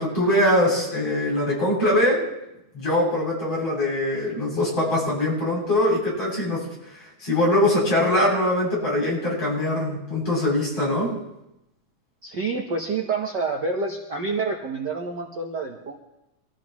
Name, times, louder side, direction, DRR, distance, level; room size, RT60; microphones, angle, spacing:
voice 1, 0.0-2.2 2.7-11.1, left 1 dB, 50° left, -5 dB, 9.0 m, -22 dB
voice 2, 12.2-16.0, right 4 dB, 50° right, 1 dB, 1.4 m, -28 dB
24.5 x 15.0 x 3.1 m, 0.89 s
omnidirectional pair, 3.4 m